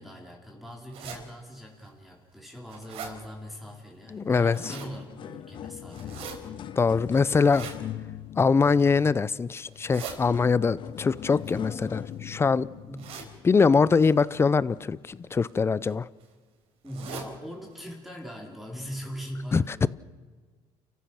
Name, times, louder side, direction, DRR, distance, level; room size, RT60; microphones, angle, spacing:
voice 1, 0.0-6.3 12.9-13.0 16.8-19.9, equal, ahead, -1 dB, 4.4 m, -41 dB
sound 1, 0.9-1.2 1.8-1.9 2.4-3.1 4.3-4.9 5.9-6.3 7.3-7.8 8.5-8.9 9.6-10.2 11.3-12.3 13.0-13.3 14.0-14.2 15.2-15.5 15.8-15.9 16.2-16.3 16.8-17.3 17.7-17.8 18.1-18.2 18.8-18.9 19.2-19.3, right 6 dB, 70° right, 4.3 m, -41 dB
sound 2, 4.0-4.2 4.4-14.1 14.8-14.9 15.7-15.8, left 10 dB, 50° left, 0.9 m, -41 dB
voice 2, 4.1-4.6 6.8-7.7 8.4-12.7 13.4-16.1 19.5-19.9, left 5 dB, 25° left, 19 dB, 0.7 m, -23 dB
30.0 x 15.0 x 6.5 m, 1.5 s
cardioid pair, 110°, 11 cm